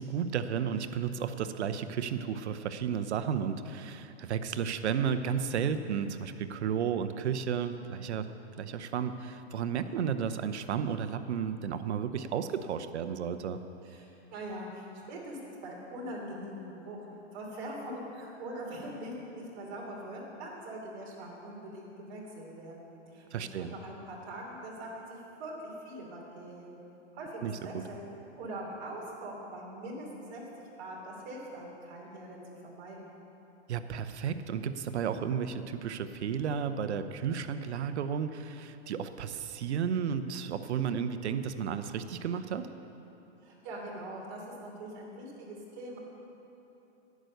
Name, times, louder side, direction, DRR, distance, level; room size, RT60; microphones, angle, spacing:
voice 1, 0.0-8.3 8.6-13.6 23.3-23.7 27.4-27.8 33.7-42.7, right 7 dB, 70° right, 10 dB, 0.8 m, -33 dB
voice 2, 13.8-17.0 17.3-26.8 27.1-28.1 28.4-30.4 30.8-33.1 43.4-46.0, right 1 dB, 40° right, -3 dB, 3.1 m, -42 dB
11.0 x 9.2 x 6.7 m, 3.0 s
hypercardioid pair, 155°, 35 cm